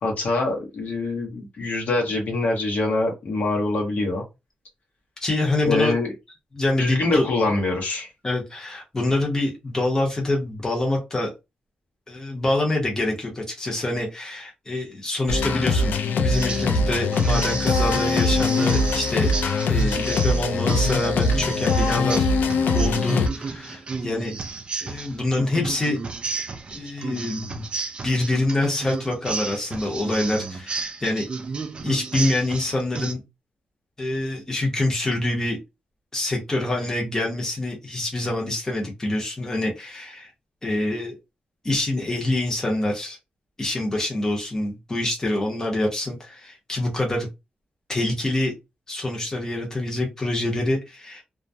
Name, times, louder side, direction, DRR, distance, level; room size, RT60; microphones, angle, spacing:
voice 1, 0.0-4.2 5.6-6.1 6.8-8.1, left 2 dB, 60° left, 0 dB, 0.8 m, -24 dB
voice 2, 5.2-5.9 6.5-7.3 8.2-11.3 12.1-19.3 19.7-22.3 22.7-24.3 24.8-26.0 26.7-27.7 28.0-31.3 31.8-33.2 34.0-35.6 36.1-40.3 40.6-41.1 41.6-43.2 43.6-47.3 47.9-48.5 48.9-51.2, left 1 dB, 20° left, -1 dB, 0.7 m, -26 dB
sound 1, 15.3-23.3, left 3 dB, 85° left, 0.4 m, -22 dB
sound 2, 16.3-16.8 17.1-33.1, right 4 dB, 35° right, 0.3 m, -33 dB
2.2 x 2.1 x 2.6 m, 0.24 s
wide cardioid pair, 150°, 3 cm